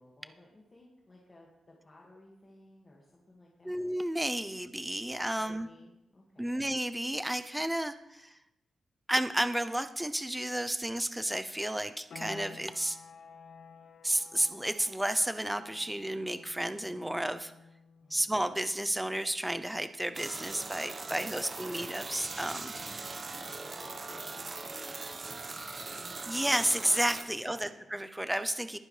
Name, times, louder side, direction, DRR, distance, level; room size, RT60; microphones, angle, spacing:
voice 1, 0.0-3.8 5.3-6.6 18.0-18.3 21.0-21.9 23.4-26.1 27.3-27.9, left 2 dB, 25° left, -3 dB, 1.8 m, -57 dB
voice 2, 3.6-5.7 6.4-8.4 9.1-13.0 14.0-17.5 18.1-22.7 26.3-28.8, right 1 dB, 5° right, 11 dB, 0.5 m, -32 dB
sound 1, 12.1-22.6, left 6 dB, 60° left, 0.9 m, -54 dB
sound 2, 20.1-27.2, right 3 dB, 30° right, 1.0 m, -40 dB
20.0 x 9.7 x 3.3 m, 0.91 s
wide cardioid pair, 180°, 0 cm